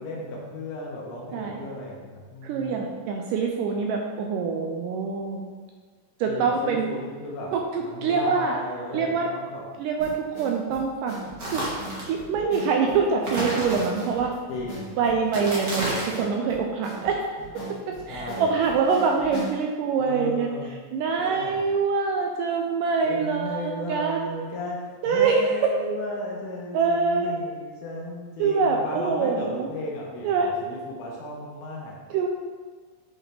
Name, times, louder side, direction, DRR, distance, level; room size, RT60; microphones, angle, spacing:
voice 1, 0.0-2.9 6.3-9.6 14.5-15.0 17.6-17.7 18.0-18.5 20.0-20.7 21.2-21.7 23.0-32.0, left 1 dB, 75° left, -2 dB, 2.2 m, -35 dB
voice 2, 2.4-5.4 6.2-6.9 7.5-8.6 8.9-9.3 9.8-11.2 11.5-11.6 12.0-14.3 15.0-17.4 17.9-20.5 20.9-24.3 25.0-25.8 26.7-27.3 28.4-29.7 30.2-30.6 32.1-32.3, right 5 dB, 80° right, 1 dB, 1.9 m, -25 dB
sound 1, 10.0-19.6, right 1 dB, 45° left, 2.8 m, -40 dB
sound 2, 11.4-12.1 13.2-14.2 15.2-16.3, right 1 dB, 55° right, 0.9 m, -30 dB
7.4 x 5.0 x 3.3 m, 1.5 s
omnidirectional pair, 4.1 m